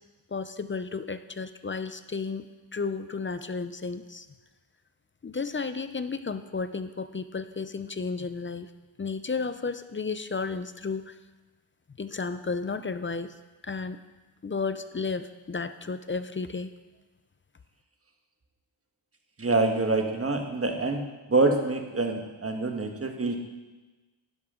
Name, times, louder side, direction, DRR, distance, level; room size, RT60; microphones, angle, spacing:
voice 1, 0.3-2.5 2.7-4.3 5.2-8.7 9.0-11.2 12.0-13.3 13.6-14.0 14.4-16.7, left 4 dB, 25° left, 11 dB, 0.5 m, -33 dB
voice 2, 19.4-21.0 21.3-23.5, right 3 dB, 30° right, 3 dB, 1.4 m, -26 dB
11.0 x 10.5 x 3.8 m, 1.2 s
cardioid pair, 85°, 49 cm